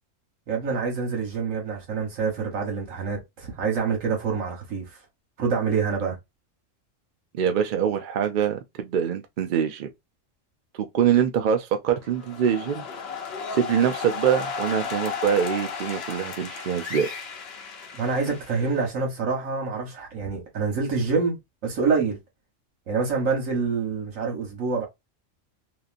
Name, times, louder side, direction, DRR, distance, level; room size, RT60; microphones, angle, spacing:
voice 1, 0.5-5.0 5.4-6.2 17.9-22.2 22.9-24.9, right 5 dB, 85° right, 1.4 m, -26 dB
voice 2, 7.3-9.9 10.7-12.9 13.5-17.1, right 8 dB, 60° right, 0.5 m, -24 dB
sound 1, 12.0-18.9, left 5 dB, 60° left, 0.8 m, -34 dB
2.9 x 2.5 x 2.5 m
omnidirectional pair, 1.3 m